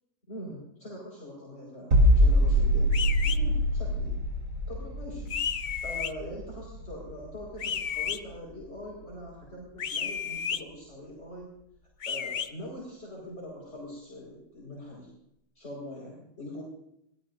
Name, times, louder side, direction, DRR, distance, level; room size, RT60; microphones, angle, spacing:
voice 1, 0.3-4.2 4.7-5.4 5.8-11.5 12.1-15.1 15.6-16.6, left 1 dB, 40° left, -5 dB, 5.2 m, -42 dB
sound 1, 1.9-7.6 7.9-8.1, equal, 75° right, 4.0 m, -24 dB
sound 2, 2.9-3.4 5.3-6.1 7.6-8.2 9.8-10.6 12.0-12.5, left 7 dB, 90° left, 0.4 m, -32 dB
26.5 x 17.5 x 2.7 m, 0.78 s
omnidirectional pair, 1.7 m